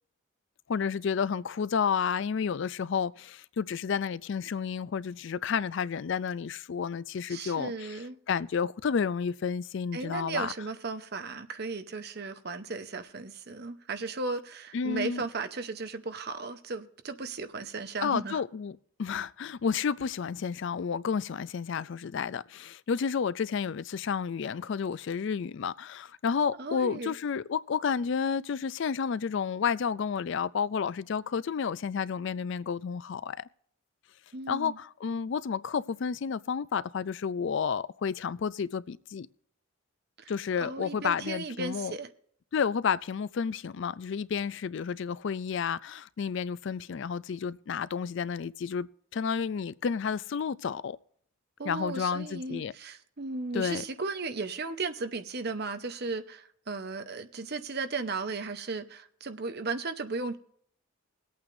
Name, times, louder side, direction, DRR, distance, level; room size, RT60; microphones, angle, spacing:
voice 1, 0.7-10.5 14.7-15.2 18.0-33.4 34.5-39.3 40.3-41.9 42.5-51.0 51.6-52.7 53.5-53.8, left 6 dB, 55° left, 0.4 m, -31 dB
voice 2, 7.3-8.2 9.9-18.4 26.6-27.1 34.3-34.8 40.2-40.3 40.6-42.1 51.6-60.4, right 3 dB, 50° right, 0.8 m, -35 dB
21.5 x 8.7 x 2.6 m
head